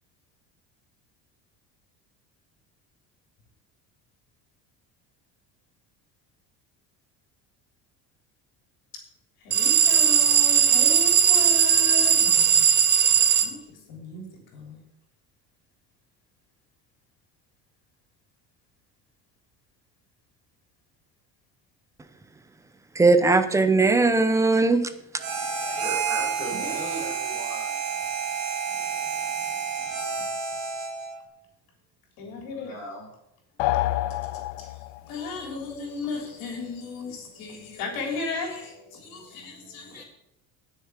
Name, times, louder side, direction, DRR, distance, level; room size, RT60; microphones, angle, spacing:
voice 1, 9.4-12.6 13.1-14.8 26.5-27.1 30.2-30.3 32.2-32.8 34.2-40.0, left 3 dB, 65° left, 3.5 m, -36 dB
sound 1, 9.5-13.5, right 8 dB, 30° right, 0.9 m, -19 dB
voice 2, 23.0-24.9, right 3 dB, 10° right, 0.5 m, -19 dB
Harmonica, 25.2-31.2, right 6 dB, 55° right, 3.2 m, -30 dB
voice 3, 25.7-28.1 32.5-33.1, equal, 20° left, 5.2 m, -38 dB
sound 2, 33.6-35.1, left 15 dB, 80° left, 0.7 m, -27 dB
18.5 x 6.6 x 4.9 m
cardioid pair, 170°, 37 cm